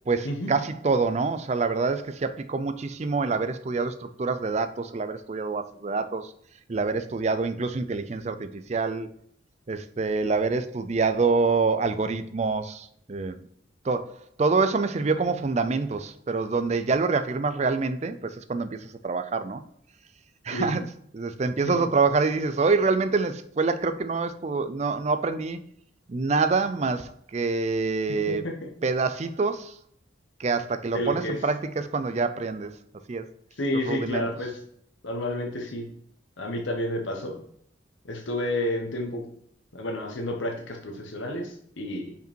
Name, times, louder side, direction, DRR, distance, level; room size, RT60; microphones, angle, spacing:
voice 1, 0.1-6.3 6.7-9.1 9.7-13.4 13.8-14.1 14.4-19.6 20.4-20.9 21.1-25.6 26.1-28.4 28.8-29.8 30.4-32.7 33.1-33.2 33.9-34.3, right 4 dB, 35° right, 0.4 m, -26 dB
voice 2, 28.3-28.7 30.9-31.4 33.6-34.6 35.0-35.9 36.4-37.4 38.0-39.3 39.7-42.1, left 1 dB, 70° left, 1.1 m, -30 dB
5.3 x 5.1 x 4.5 m
head